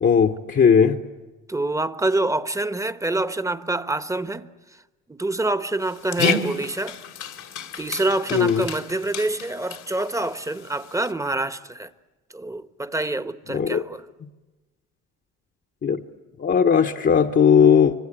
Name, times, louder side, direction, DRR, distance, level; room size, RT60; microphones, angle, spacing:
voice 1, 0.0-1.0 8.3-8.7 13.5-13.8 15.8-16.0 16.4-17.9, left 7 dB, 40° left, 1.0 m, -17 dB
voice 2, 1.5-4.8 5.1-7.0 7.8-11.9 12.3-14.0, right 2 dB, 10° right, 1.0 m, -26 dB
Dog, 5.8-11.1, left 6 dB, 80° left, 2.2 m, -31 dB
25.5 x 25.0 x 8.9 m
cardioid pair, 90°, 30 cm